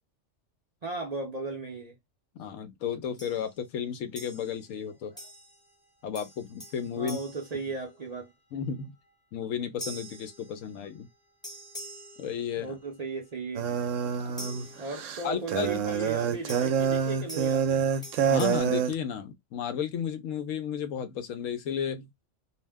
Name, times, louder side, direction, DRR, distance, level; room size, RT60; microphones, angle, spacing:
voice 1, 0.8-1.9 7.0-8.3 12.6-13.7 14.8-17.8, right 3 dB, 45° right, 0.5 m, -36 dB
voice 2, 2.4-5.1 6.0-7.2 8.5-8.9 9.3-11.1 12.2-12.8 14.4-14.6 15.2-15.9 18.3-22.3, left 7 dB, 85° left, 1.0 m, -33 dB
sound 1, 3.2-3.6 4.2-4.7 5.2-5.7 6.1-8.3 9.8-11.0 11.4-12.9 14.4-15.4 16.5-18.6, equal, 5° left, 0.7 m, -45 dB
sound 2, 13.5-18.9, right 7 dB, 80° right, 0.9 m, -27 dB
2.5 x 2.1 x 3.4 m
omnidirectional pair, 1.3 m